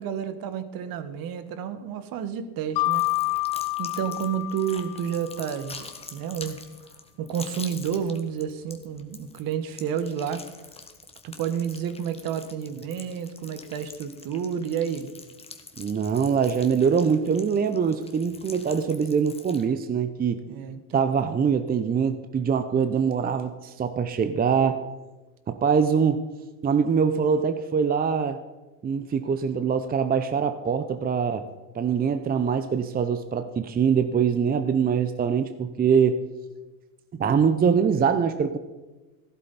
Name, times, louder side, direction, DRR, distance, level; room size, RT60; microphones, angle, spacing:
voice 1, 0.0-3.0 3.8-6.6 7.2-10.4 11.2-15.1 20.5-21.1, right 8 dB, 50° right, 11 dB, 1.4 m, -30 dB
Mallet percussion, 2.8-5.5, left 21 dB, 65° left, 0.8 m, -28 dB
sound 1, 2.9-19.7, left 4 dB, 15° left, 1.5 m, -46 dB
voice 2, 15.8-20.4 20.9-24.8 25.5-26.2 26.6-28.4 28.8-31.5 31.7-36.2 37.1-38.6, right 6 dB, 20° right, 10 dB, 0.7 m, -23 dB
15.0 x 12.5 x 4.1 m, 1.2 s
supercardioid pair, 100°, 43 cm